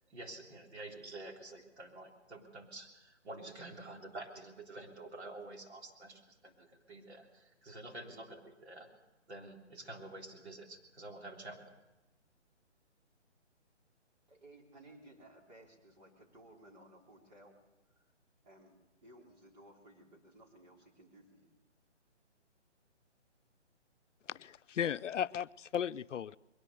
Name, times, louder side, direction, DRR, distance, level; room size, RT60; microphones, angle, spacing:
voice 1, 0.1-8.9 9.3-11.6, right 2 dB, 65° right, 1 dB, 3.8 m, -49 dB
voice 2, 14.3-17.5 18.0-18.1 18.4-21.5, right 1 dB, 40° right, -1 dB, 3.9 m, -58 dB
voice 3, 24.3-26.4, left 9 dB, 85° left, 15 dB, 0.6 m, -36 dB
21.5 x 18.0 x 6.8 m, 1.0 s
hypercardioid pair, 165°, 36 cm